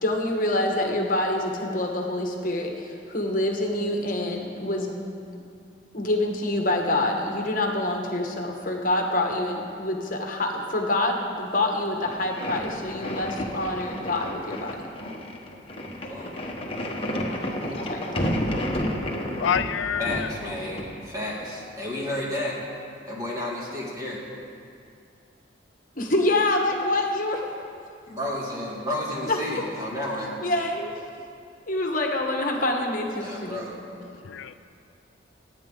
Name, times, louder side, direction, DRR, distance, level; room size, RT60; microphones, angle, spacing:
voice 1, 0.0-5.0 5.9-14.8 17.1-18.3 26.0-27.4 28.9-29.0 29.3-29.4 30.4-30.9 31.7-33.6, left 1 dB, 45° left, 2 dB, 1.3 m, -26 dB
sound 1, 12.0-21.5, equal, 30° left, 1.2 m, -31 dB
voice 2, 16.1-16.4 20.0-22.6 23.0-24.2 28.1-30.4 33.2-33.8, left 1 dB, 20° right, -5 dB, 2.5 m, -32 dB
voice 3, 18.6-20.3 34.1-34.5, left 8 dB, 80° left, 11 dB, 0.4 m, -29 dB
25.0 x 9.4 x 3.8 m, 2.5 s
head